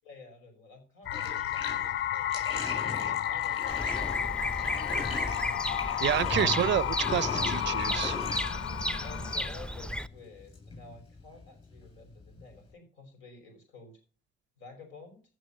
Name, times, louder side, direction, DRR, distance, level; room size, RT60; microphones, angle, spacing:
voice 1, 0.0-2.4 2.9-4.9 9.0-14.0 14.6-15.2, left 3 dB, 90° left, 5.8 m, -51 dB
sound 1, 1.1-9.5, left 11 dB, 75° left, 0.5 m, -32 dB
Bathtub (filling or washing), 1.1-12.7, left 3 dB, 30° left, 7.6 m, -40 dB
Bird vocalization bird call bird song, 3.7-10.1, equal, 5° left, 0.6 m, -34 dB
voice 2, 6.0-8.2, right 12 dB, 65° right, 0.4 m, -29 dB
15.0 x 6.2 x 5.6 m
cardioid pair, 90°, 20 cm